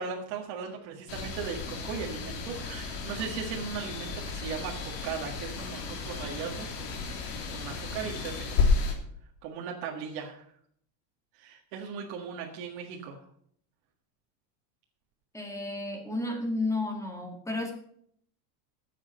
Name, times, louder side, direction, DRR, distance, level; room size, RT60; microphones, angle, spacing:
voice 1, 0.0-8.7 9.4-10.5 11.3-13.2, right 6 dB, 55° right, 0 dB, 1.8 m, -38 dB
sound 1, 1.1-8.9, left 4 dB, 60° left, 3.1 m, -32 dB
voice 2, 15.3-17.7, left 2 dB, 5° left, 2 dB, 1.8 m, -32 dB
9.8 x 7.6 x 7.5 m, 0.65 s
cardioid pair, 165°, 50 cm